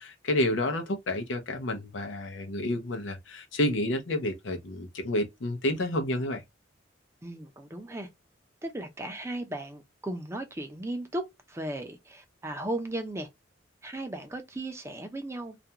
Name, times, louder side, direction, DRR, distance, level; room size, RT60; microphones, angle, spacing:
voice 1, 0.0-6.4, left 1 dB, 85° left, 0.6 m, -30 dB
voice 2, 7.2-8.1 8.6-13.3 13.8-15.6, right 1 dB, 15° right, 0.4 m, -36 dB
2.4 x 2.2 x 2.7 m
head